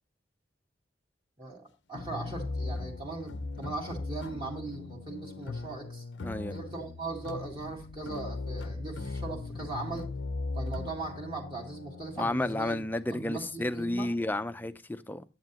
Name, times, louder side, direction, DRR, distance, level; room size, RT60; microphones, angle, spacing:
voice 1, 1.4-6.0 6.5-10.1 10.5-12.8 13.1-14.1, right 2 dB, 30° right, 1.8 m, -39 dB
sound 1, 1.9-14.8, left 3 dB, 80° left, 0.6 m, -39 dB
voice 2, 6.2-6.6 12.2-15.2, left 1 dB, 10° left, 0.4 m, -32 dB
9.7 x 8.1 x 2.9 m
head